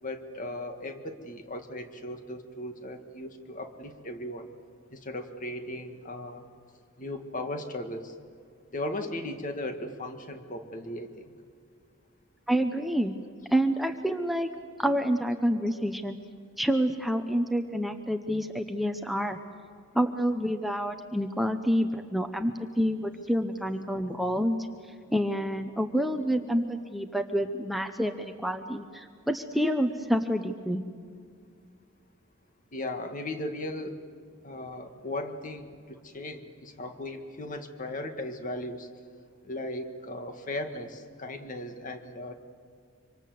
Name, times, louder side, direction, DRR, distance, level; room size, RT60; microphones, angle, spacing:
voice 1, 0.0-4.5 4.9-6.5 7.0-8.1 8.7-11.3 32.7-34.0 34.4-38.9 39.4-42.4, left 1 dB, 40° left, 6 dB, 1.9 m, -37 dB
voice 2, 12.5-13.2 13.5-14.5 14.8-16.2 16.6-19.4 19.9-24.7 25.1-30.8, equal, ahead, 6 dB, 0.9 m, -28 dB
26.0 x 26.0 x 7.8 m, 2.1 s
head